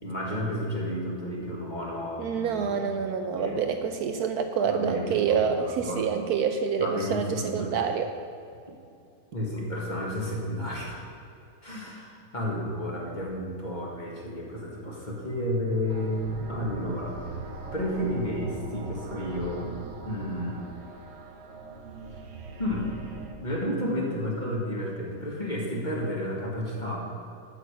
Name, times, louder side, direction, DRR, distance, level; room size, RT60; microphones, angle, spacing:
voice 1, 0.0-2.9 3.2-3.6 4.6-6.0 6.8-7.8 9.3-11.0 11.6-17.3 17.7-19.7 20.0-20.7 22.6-22.9 23.4-27.1, left 1 dB, 25° left, -3 dB, 1.8 m, -32 dB
voice 2, 2.2-8.1, right 6 dB, 70° right, 6 dB, 1.0 m, -27 dB
sound 1, 15.9-23.4, right 3 dB, 50° right, 1.0 m, -40 dB
8.4 x 6.0 x 8.1 m, 2.5 s
omnidirectional pair, 1.8 m